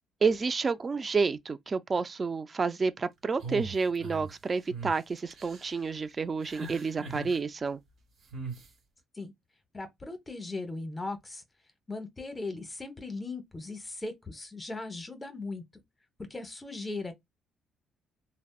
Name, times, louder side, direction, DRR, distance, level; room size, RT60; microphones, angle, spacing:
voice 1, 0.2-7.8, right 4 dB, 30° right, 0.3 m, -29 dB
sound 1, 3.4-4.3 4.7-4.9 5.3-5.8 6.4-7.4 8.3-8.7, right 3 dB, 55° right, 1.2 m, -39 dB
voice 2, 9.7-11.4 11.9-15.6 16.3-17.1, left 3 dB, 20° left, 0.8 m, -38 dB
3.3 x 2.0 x 2.3 m
cardioid pair, 100°, 0 cm